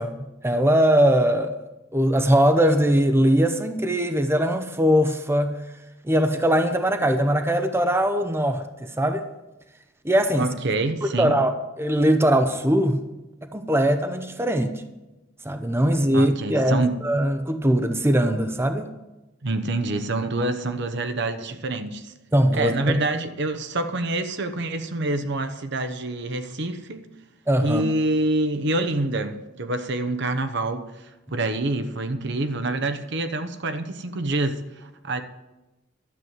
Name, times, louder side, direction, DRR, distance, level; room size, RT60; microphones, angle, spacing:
voice 1, 0.0-1.5 1.9-5.6 6.0-8.6 9.0-9.2 10.0-10.5 11.2-13.0 13.5-14.8 15.4-18.9 22.3-22.7 27.5-27.8, equal, 15° right, 0.7 m, -21 dB
voice 2, 10.4-11.4 16.1-17.0 19.4-22.1 22.5-27.1 27.6-35.2, right 2 dB, 60° right, 1.0 m, -26 dB
12.0 x 7.6 x 8.0 m
head